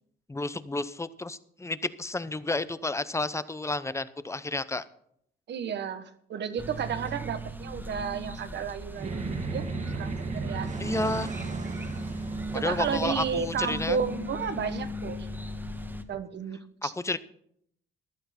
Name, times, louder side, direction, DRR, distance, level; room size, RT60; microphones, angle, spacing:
voice 1, 0.3-4.8 10.8-11.3 12.5-14.0 16.8-17.2, left 2 dB, 15° left, 15 dB, 0.7 m, -31 dB
voice 2, 5.5-9.6 9.9-10.7 12.5-15.3 16.1-16.9, right 7 dB, 60° right, 11 dB, 1.2 m, -32 dB
sound 1, 6.6-16.0, right 1 dB, 10° right, 1.3 m, -38 dB
sound 2, 8.9-15.5, right 3 dB, 35° right, 1.8 m, -36 dB
15.0 x 11.5 x 4.3 m, 0.68 s
cardioid pair, 90°, 20 cm